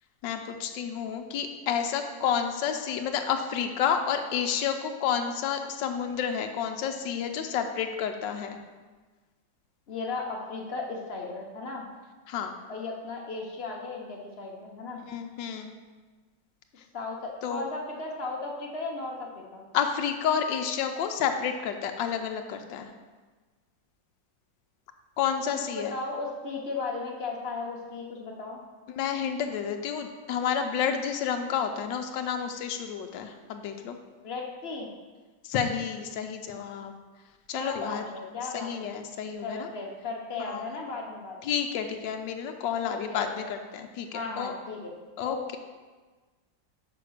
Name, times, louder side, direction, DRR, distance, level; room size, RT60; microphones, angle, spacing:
voice 1, 0.2-8.6 12.3-12.5 15.1-15.7 17.4-17.6 19.7-22.9 25.2-25.9 28.9-34.0 35.4-36.9 37.5-38.1 38.5-39.7 40.4-40.8 41.4-44.5 45.2-45.6, left 7 dB, 80° left, 5 dB, 1.3 m, -30 dB
voice 2, 9.9-11.9 12.7-15.0 16.9-19.6 25.7-28.6 34.2-34.9 37.5-38.9 39.4-41.4 42.8-43.5 44.1-44.9 45.2-45.6, left 3 dB, 40° left, 0 dB, 1.0 m, -36 dB
5.7 x 5.1 x 6.3 m, 1.3 s
omnidirectional pair, 2.0 m